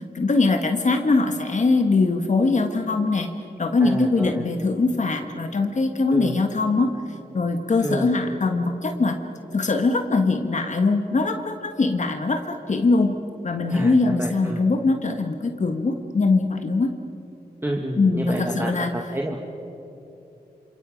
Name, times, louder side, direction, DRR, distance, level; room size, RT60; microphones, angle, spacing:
voice 1, 0.1-3.3 3.6-6.9 7.3-9.2 9.5-13.2 13.4-16.9 18.0-19.0, left 3 dB, 45° left, 5 dB, 1.4 m, -22 dB
voice 2, 3.8-4.4 6.1-6.4 7.8-8.1 13.7-14.7 17.6-19.4, right 1 dB, 15° right, -1 dB, 1.9 m, -29 dB
27.5 x 27.0 x 5.2 m, 2.9 s
wide cardioid pair, 90°, 17 cm